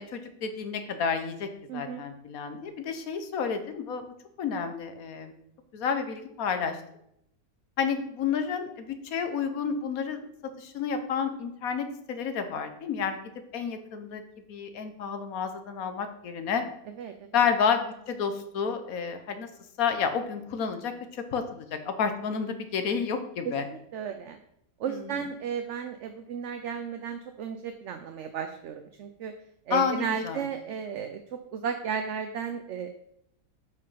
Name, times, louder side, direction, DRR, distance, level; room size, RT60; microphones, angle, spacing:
voice 1, 0.0-4.0 4.4-5.3 5.7-6.8 7.8-10.3 10.6-13.2 13.5-14.2 14.5-16.6 17.3-19.5 19.8-23.6 25.1-25.2 29.7-30.4, left 6 dB, 70° left, 8 dB, 1.4 m, -30 dB
voice 2, 1.7-2.0 17.0-17.5 23.4-23.5 23.9-24.4 24.8-29.3 29.7-32.9, right 7 dB, 60° right, 7 dB, 0.9 m, -34 dB
7.5 x 5.5 x 5.6 m, 0.75 s
omnidirectional pair, 1.6 m